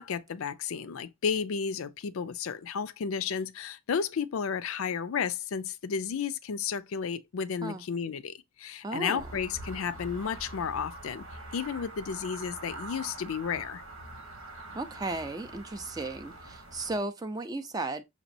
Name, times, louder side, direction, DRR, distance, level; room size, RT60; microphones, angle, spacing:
voice 1, 0.0-11.2 11.5-13.8, left 6 dB, 75° left, 0.4 m, -32 dB
voice 2, 8.8-9.3 14.7-18.0, right 2 dB, 20° right, 0.4 m, -35 dB
sound 1, 9.2-17.0, right 2 dB, 85° right, 1.2 m, -44 dB
5.9 x 3.0 x 2.6 m
head